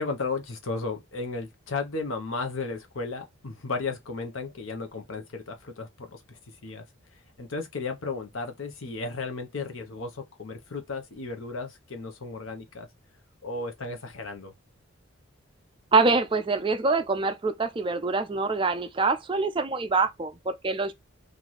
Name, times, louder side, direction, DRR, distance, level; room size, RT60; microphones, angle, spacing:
voice 1, 0.0-6.8 7.4-12.9 13.4-14.5, left 3 dB, 80° left, 0.8 m, -34 dB
voice 2, 15.9-20.9, right 3 dB, 25° right, 0.4 m, -25 dB
3.1 x 2.5 x 3.9 m
head